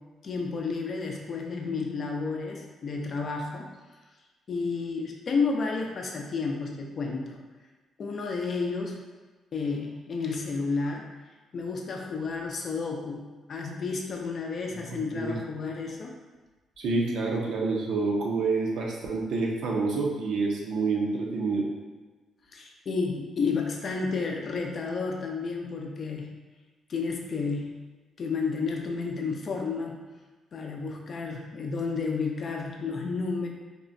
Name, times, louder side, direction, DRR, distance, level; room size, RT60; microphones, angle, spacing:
voice 1, 0.2-3.7 4.5-7.4 8.0-9.0 9.5-11.0 11.5-13.2 13.5-16.2 22.5-26.3 26.9-27.6 28.2-30.0 30.5-33.5, left 4 dB, 50° left, 1 dB, 0.5 m, -31 dB
voice 2, 14.9-15.4 16.8-21.7, right 3 dB, 80° right, -1 dB, 0.6 m, -28 dB
3.6 x 2.1 x 2.6 m, 1.3 s
cardioid pair, 90°, 0 cm